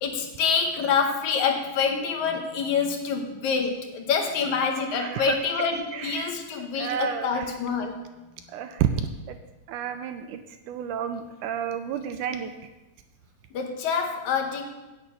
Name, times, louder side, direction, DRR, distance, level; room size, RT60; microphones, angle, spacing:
voice 1, 0.0-8.0 13.5-14.8, left 6 dB, 70° left, 4 dB, 2.1 m, -26 dB
voice 2, 4.9-5.7 5.9-6.3 6.8-7.5 8.5-8.9 9.3-9.4 9.7-10.4 10.7-12.5, right 9 dB, 80° right, 8 dB, 2.0 m, -30 dB
9.5 x 5.9 x 8.2 m, 1.1 s
omnidirectional pair, 3.9 m